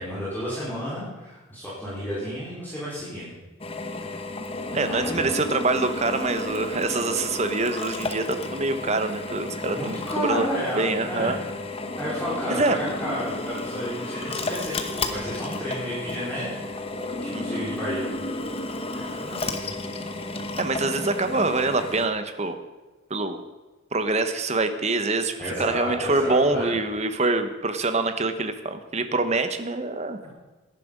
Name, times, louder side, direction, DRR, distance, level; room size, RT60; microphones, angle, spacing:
voice 1, 0.0-3.3 4.7-5.3 9.7-11.4 12.0-16.5 17.2-18.2 18.9-19.7 25.4-26.7, equal, 10° left, -9 dB, 4.0 m, -32 dB
Drill, 3.6-22.1, left 2 dB, 25° left, 1.0 m, -32 dB
voice 2, 4.7-10.5 10.8-11.4 12.5-12.8 17.3-17.6 20.6-22.6 23.1-23.4 23.9-30.2, right 3 dB, 30° right, 9 dB, 1.0 m, -25 dB
17.0 x 10.5 x 5.2 m, 1.2 s
head